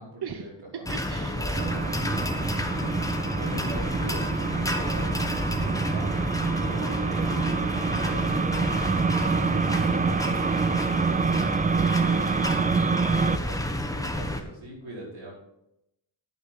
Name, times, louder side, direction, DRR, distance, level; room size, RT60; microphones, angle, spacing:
voice 1, 0.0-2.2 2.6-6.2 6.6-9.1 13.1-15.3, right 1 dB, 85° right, -4 dB, 5.0 m, -41 dB
voice 2, 0.7-1.6 9.2-12.5, right 7 dB, 55° right, 7 dB, 0.8 m, -40 dB
sound 1, 0.9-14.4, left 1 dB, 5° left, 1.1 m, -30 dB
sound 2, 1.5-13.4, right 5 dB, 20° right, 0.3 m, -26 dB
10.5 x 9.3 x 4.1 m, 0.83 s
wide cardioid pair, 80°, 47 cm